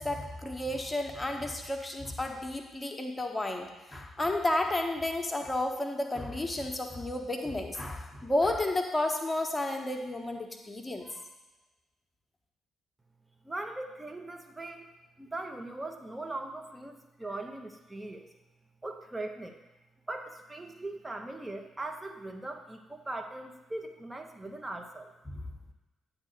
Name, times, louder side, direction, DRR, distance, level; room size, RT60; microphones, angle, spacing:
voice 1, 0.0-3.7 3.9-11.2 25.3-25.4, left 1 dB, 20° left, 3 dB, 1.2 m, -32 dB
voice 2, 13.4-14.9 15.2-18.3 18.8-19.6 20.1-25.1, right 2 dB, 15° right, 5 dB, 1.0 m, -40 dB
9.5 x 3.8 x 6.6 m, 1.1 s
figure-of-eight pair, 40°, 0 cm